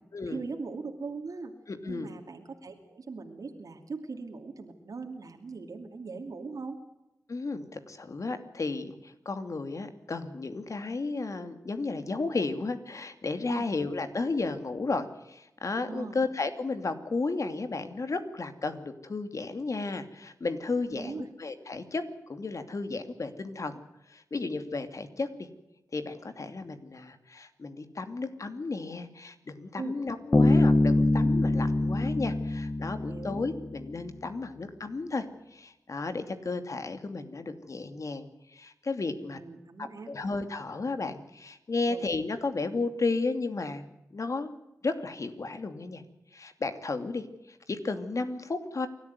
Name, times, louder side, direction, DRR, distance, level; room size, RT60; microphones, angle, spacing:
voice 1, 0.3-1.5 1.9-6.8 13.5-13.7 15.9-16.2 20.8-21.3 29.7-30.0 33.1-33.4 39.2-40.3 41.9-42.0, right 4 dB, 80° right, 3 dB, 2.6 m, -40 dB
voice 2, 1.7-2.1 7.3-22.0 22.3-23.8 24.1-25.5 25.9-35.3 35.5-39.4 39.8-43.8 44.1-44.5 44.8-46.0 46.3-48.9, left 3 dB, 65° left, 8 dB, 2.6 m, -33 dB
Bass guitar, 30.3-33.9, left 2 dB, 30° left, 0.8 m, -24 dB
27.5 x 13.0 x 9.4 m, 0.91 s
cardioid pair, 55°, 6 cm